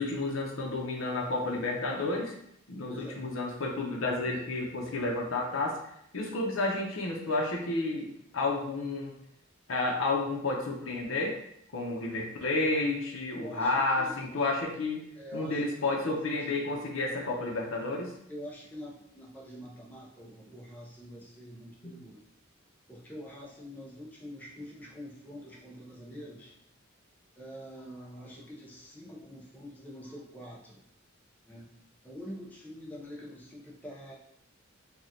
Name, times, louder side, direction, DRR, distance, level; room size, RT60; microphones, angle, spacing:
voice 1, 0.0-2.3 2.7-5.8 6.1-8.1 8.3-9.1 9.7-11.4 11.7-15.0 15.3-18.1 21.8-21.9, left 2 dB, 80° left, 0 dB, 0.8 m, -31 dB
voice 2, 2.9-3.2 13.3-14.1 15.1-16.7 18.3-22.2 22.9-26.5 27.4-30.8 31.5-31.7 32.0-34.1, equal, 10° left, -4 dB, 0.7 m, -45 dB
4.9 x 2.4 x 2.8 m, 0.74 s
head